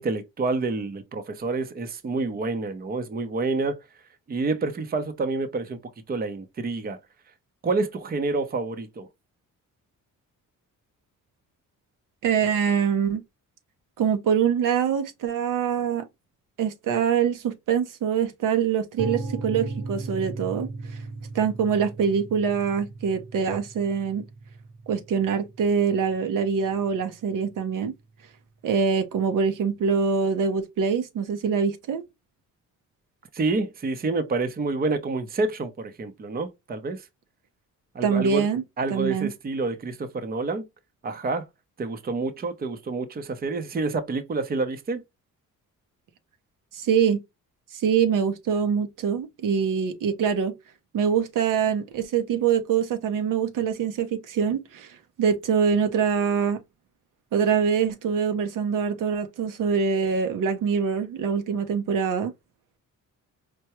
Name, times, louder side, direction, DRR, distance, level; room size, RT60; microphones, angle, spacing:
voice 1, 0.0-3.8 4.3-5.8 6.1-7.0 7.6-9.1 33.3-37.1 37.9-38.5 38.8-40.6 41.0-41.5 41.8-45.0, right 3 dB, 30° right, 0.6 m, -28 dB
voice 2, 12.2-13.2 14.0-16.1 16.6-20.7 21.3-24.2 24.9-27.9 28.6-32.0 38.0-38.6 38.9-39.3 46.7-47.2 47.7-50.5 50.9-56.6 57.3-62.3, right 7 dB, 70° right, 0.7 m, -24 dB
sound 1, 19.0-26.9, right 3 dB, 85° right, 1.2 m, -37 dB
4.6 x 2.2 x 2.9 m
cardioid pair, 115°, 33 cm